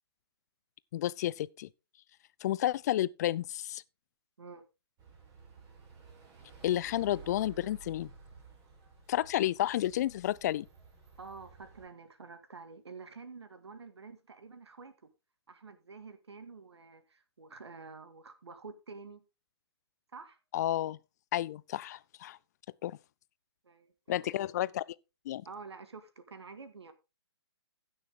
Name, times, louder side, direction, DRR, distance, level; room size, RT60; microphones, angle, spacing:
voice 1, 0.9-1.7 2.4-3.8 6.6-8.1 9.1-10.7 20.5-21.0 21.3-22.4 22.8-23.0 24.1-24.9 25.3-25.4, left 13 dB, 40° left, 0.5 m, -31 dB
sound 1, 5.0-11.9, right 5 dB, 25° right, 3.9 m, -54 dB
voice 2, 11.2-15.1 15.5-19.2 20.1-20.4 23.6-24.4 25.4-26.9, right 4 dB, 75° right, 2.1 m, -49 dB
15.5 x 6.5 x 3.7 m
figure-of-eight pair, 135°, 14 cm